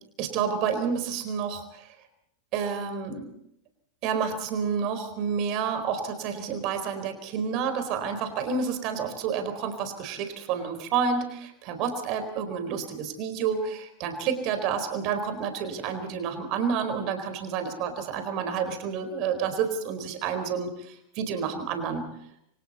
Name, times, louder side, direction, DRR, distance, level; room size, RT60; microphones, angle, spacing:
voice 1, 0.2-1.9 2.5-3.3 4.0-22.1, right 6 dB, 40° right, 9 dB, 4.3 m, -29 dB
29.5 x 25.0 x 4.2 m, 0.74 s
figure-of-eight pair, 90°, 0 cm